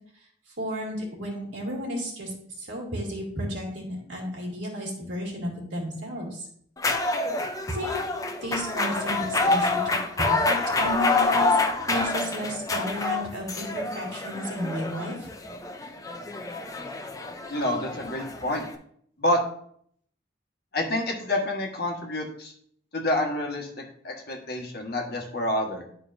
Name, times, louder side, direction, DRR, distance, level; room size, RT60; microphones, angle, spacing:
voice 1, 0.6-6.5 7.7-8.0 8.4-11.6 11.9-15.1, equal, 80° right, -2 dB, 2.5 m, -33 dB
sound 1, 6.8-18.7, left 3 dB, 20° left, 0.5 m, -27 dB
voice 2, 17.5-18.6 19.2-19.4 20.7-22.5 22.9-25.8, left 1 dB, 55° left, 0 dB, 1.4 m, -28 dB
11.0 x 4.6 x 2.6 m, 0.65 s
head